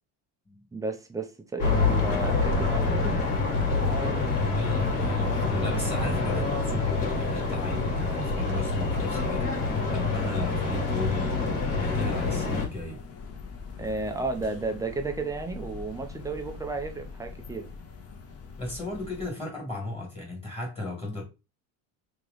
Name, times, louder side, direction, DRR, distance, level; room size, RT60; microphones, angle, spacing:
voice 1, 0.7-3.2 3.8-4.3 13.8-17.7, right 3 dB, 10° right, 0.4 m, -33 dB
sound 1, 1.6-12.7, left 3 dB, 90° left, 1.8 m, -26 dB
voice 2, 4.4-13.0 18.6-21.2, left 2 dB, 15° left, 1.6 m, -35 dB
sound 2, 12.1-19.3, left 3 dB, 35° left, 0.8 m, -43 dB
3.2 x 3.0 x 3.8 m
cardioid pair, 135°, 44 cm